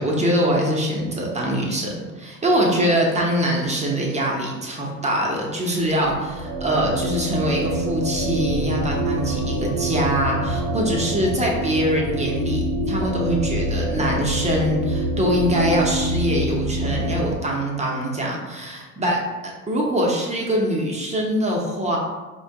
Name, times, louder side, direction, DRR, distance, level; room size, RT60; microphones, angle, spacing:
voice 1, 0.0-19.2 19.7-22.0, equal, 15° right, -2 dB, 0.7 m, -23 dB
sound 1, 5.9-17.3, right 1 dB, 55° right, 0.9 m, -26 dB
4.2 x 2.2 x 2.7 m, 1.2 s
hypercardioid pair, 85°, 41 cm